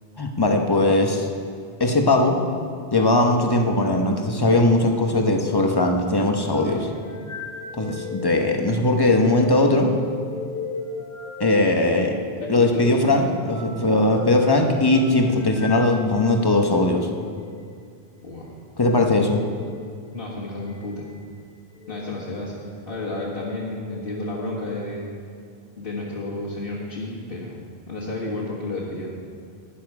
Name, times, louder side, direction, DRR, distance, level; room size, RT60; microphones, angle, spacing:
voice 1, 0.2-1.3 1.8-2.4 2.9-6.9 7.7-9.9 11.4-12.1 12.5-17.1 18.8-19.4, left 2 dB, 25° left, 3 dB, 0.9 m, -19 dB
sound 1, 6.6-16.5 17.3-17.5 19.5-19.9 20.7-21.2 21.7-22.0 22.8-23.3 23.8-24.8, left 4 dB, 45° left, 1.9 m, -36 dB
voice 2, 12.4-13.1 18.2-18.5 20.1-21.1 21.9-25.0 25.8-27.6 27.9-29.1, left 2 dB, 65° left, -9 dB, 1.9 m, -31 dB
12.5 x 10.5 x 4.8 m, 2.2 s
omnidirectional pair, 1.0 m